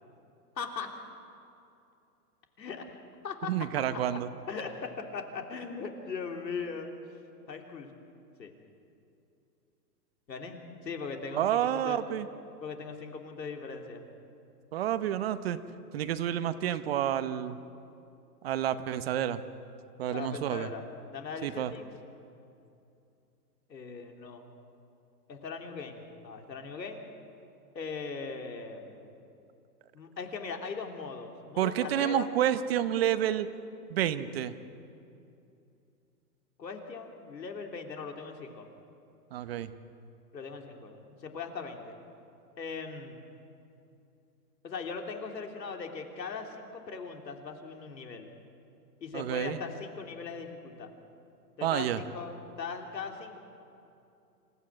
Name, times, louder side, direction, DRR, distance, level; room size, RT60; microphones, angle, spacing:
voice 1, 0.6-0.9 2.6-3.0 3.2-4.0 4.5-6.9 7.5-7.9 8.4-8.5 10.3-12.0 12.6-14.0 20.1-20.8 21.1-21.9 23.7-24.4 25.3-27.1 27.8-29.1 29.9-32.3 36.6-38.7 40.3-42.0 42.6-43.2 44.6-48.3 49.0-50.9 51.6-53.4, left 5 dB, 90° left, 4 dB, 3.3 m, -39 dB
voice 2, 3.5-4.3 11.3-12.3 14.7-15.6 15.9-17.6 18.4-19.4 20.0-20.7 21.4-21.7 31.6-33.5 33.9-34.5 39.3-39.7 49.1-49.6 51.6-52.0, right 11 dB, 40° right, 12 dB, 0.9 m, -29 dB
27.0 x 14.5 x 8.7 m, 2.7 s
hypercardioid pair, 150°, 49 cm